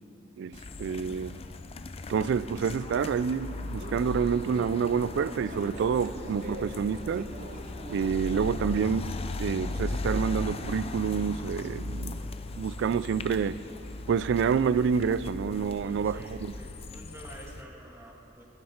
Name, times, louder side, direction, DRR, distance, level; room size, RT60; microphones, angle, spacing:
voice 1, 0.4-1.4 2.1-7.3 7.9-9.1 9.4-12.2 12.6-13.6 14.1-16.2, right 6 dB, 65° right, 17 dB, 0.3 m, -28 dB
sound 1, 0.5-17.6, left 2 dB, 30° left, 0.5 m, -37 dB
sound 2, 3.3-8.9, right 2 dB, 45° right, 0.7 m, -44 dB
voice 2, 15.8-18.4, right 1 dB, 15° right, -3 dB, 1.8 m, -48 dB
16.5 x 9.5 x 4.4 m, 2.8 s
head